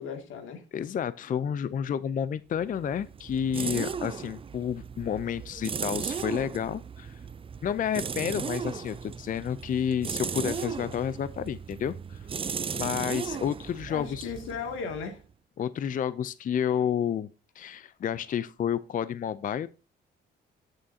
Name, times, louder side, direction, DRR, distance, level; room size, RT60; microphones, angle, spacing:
voice 1, 0.0-0.6 13.3-13.4 13.9-15.2, left 5 dB, 90° left, 2.2 m, -36 dB
voice 2, 0.7-7.2 7.6-12.3 12.7-14.3 15.6-17.3 17.6-19.7, left 8 dB, 45° left, 0.5 m, -30 dB
sound 1, 2.6-15.2, right 6 dB, 25° right, 0.4 m, -36 dB
13.5 x 6.4 x 2.7 m
cardioid pair, 90°, 20 cm